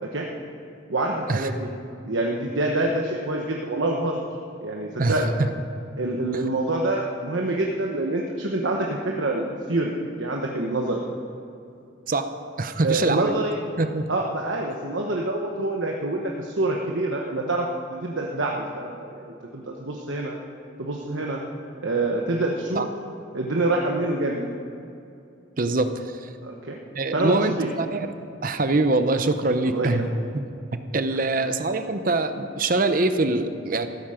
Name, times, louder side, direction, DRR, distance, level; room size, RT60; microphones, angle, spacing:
voice 1, 0.9-1.7 2.0-4.2 4.6-5.4 6.0-9.9 10.2-11.0 12.8-13.6 14.1-20.4 20.8-21.4 21.8-22.9 23.3-24.5 26.4-26.8 27.1-27.7 29.7-30.1 31.1-31.5, right 2 dB, 75° right, 0 dB, 1.1 m, -26 dB
voice 2, 12.6-13.3 13.8-14.1 22.7-22.9 25.6-25.9 26.9-28.1 28.4-30.0 30.3-30.4 30.7-33.9, right 2 dB, 45° right, 9 dB, 0.7 m, -24 dB
15.0 x 13.0 x 5.1 m, 2.6 s
head